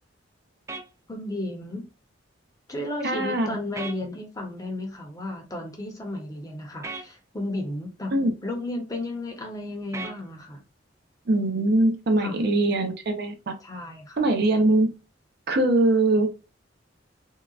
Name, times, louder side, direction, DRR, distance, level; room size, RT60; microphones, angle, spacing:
sound 1, 0.7-0.9 3.7-4.0 6.8-7.1 9.9-10.2, right 3 dB, 15° right, 0.3 m, -35 dB
voice 1, 1.1-1.9 2.7-8.1 8.4-10.6 12.2-12.4 13.6-14.3, left 1 dB, 20° left, 0.7 m, -33 dB
voice 2, 3.0-3.6 8.1-8.3 11.3-13.5 14.2-14.9 15.5-16.3, right 2 dB, 60° right, 0.6 m, -22 dB
3.7 x 2.1 x 2.3 m
head